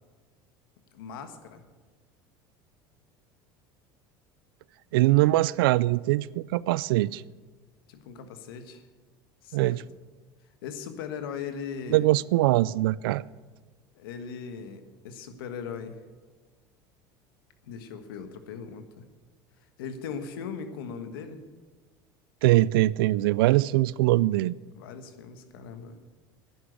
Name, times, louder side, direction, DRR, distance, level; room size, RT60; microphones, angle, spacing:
voice 1, 0.9-1.6 7.9-8.8 9.4-9.8 10.6-12.1 13.9-16.0 17.7-19.0 19.8-21.4 24.8-26.0, left 6 dB, 85° left, 1.5 m, -39 dB
voice 2, 4.9-7.2 9.5-9.8 11.9-13.2 22.4-24.5, right 17 dB, 80° right, 0.4 m, -22 dB
11.0 x 10.5 x 8.0 m
supercardioid pair, 90°, 12 cm